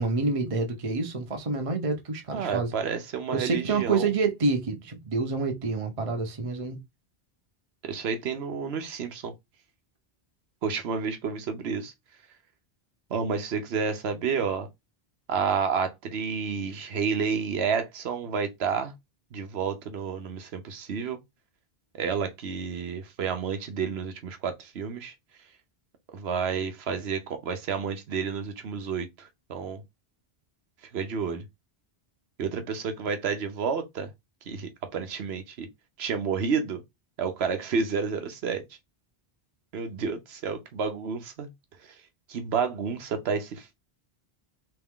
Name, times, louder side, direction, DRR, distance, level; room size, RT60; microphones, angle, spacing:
voice 1, 0.0-2.7 3.3-6.8, right 3 dB, 35° right, 0.9 m, -27 dB
voice 2, 2.3-4.1 7.8-9.3 10.6-11.9 13.1-14.7 15.3-18.9 19.3-21.2 21.9-25.1 26.1-29.8 30.9-31.4 32.4-34.1 34.5-35.7 36.0-36.8 37.2-38.6 39.7-41.5 41.8-41.9 42.3-43.7, right 6 dB, 85° right, 1.1 m, -30 dB
3.5 x 3.2 x 3.6 m
omnidirectional pair, 1.0 m